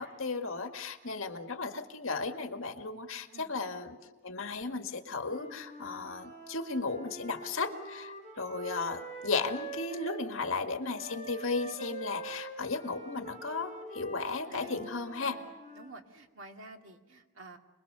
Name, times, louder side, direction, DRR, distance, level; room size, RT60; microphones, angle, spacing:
voice 1, 0.0-4.0 4.2-15.4, left 3 dB, 70° left, 5 dB, 1.9 m, -35 dB
Wind instrument woodwind instrument, 5.2-10.2 10.9-15.9, right 2 dB, 35° right, 5.5 m, -45 dB
voice 2, 14.5-14.8 15.2-15.4 15.7-17.6, right 3 dB, 70° right, 3 dB, 2.4 m, -50 dB
26.5 x 21.0 x 6.8 m, 1.2 s
head